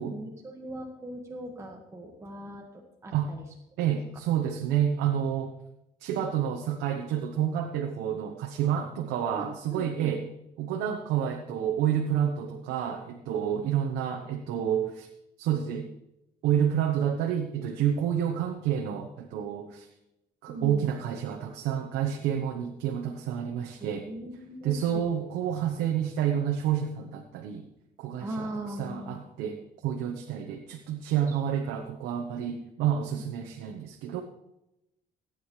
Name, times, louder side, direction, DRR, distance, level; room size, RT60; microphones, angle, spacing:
voice 1, 0.0-3.5 9.4-10.1 20.5-21.0 23.8-25.4 28.2-29.2 31.1-31.4, right 1 dB, 15° right, 0 dB, 1.6 m, -40 dB
voice 2, 3.8-5.5 6.0-10.2 10.6-15.1 15.4-15.9 16.4-19.9 20.4-24.1 24.6-27.7 28.0-28.5 28.8-34.2, right 9 dB, 90° right, 4 dB, 1.0 m, -29 dB
17.5 x 9.3 x 3.2 m, 0.89 s
cardioid pair, 110°, 17 cm